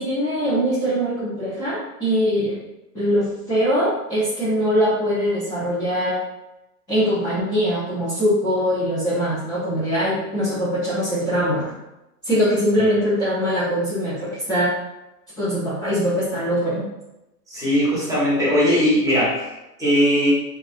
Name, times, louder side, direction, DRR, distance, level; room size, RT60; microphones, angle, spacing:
voice 1, 0.0-2.6 2.9-6.2 6.9-11.6 12.2-14.8 15.4-16.9, equal, 10° left, -12 dB, 0.5 m, -22 dB
voice 2, 17.5-19.5 19.8-20.3, equal, 5° right, -9 dB, 0.9 m, -19 dB
2.3 x 2.3 x 2.4 m, 0.94 s
figure-of-eight pair, 110°, 47 cm